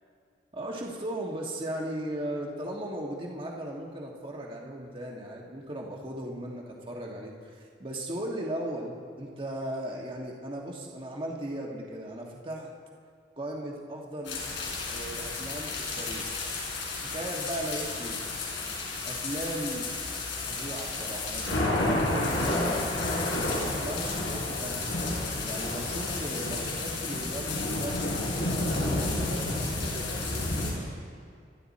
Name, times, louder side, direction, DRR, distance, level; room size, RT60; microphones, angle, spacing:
voice 1, 0.5-12.7 13.4-14.4 14.8-16.4 17.0-18.2 19.0-19.9 20.4-22.9 23.5-24.9 25.2-28.2 28.9-29.1, right 1 dB, 30° right, -1 dB, 1.6 m, -37 dB
sound 1, 14.3-30.7, left 2 dB, 75° left, 4.6 m, -31 dB
voice 2, 28.7-30.7, right 1 dB, 80° right, 0 dB, 2.2 m, -42 dB
25.5 x 12.0 x 4.2 m, 2.1 s
head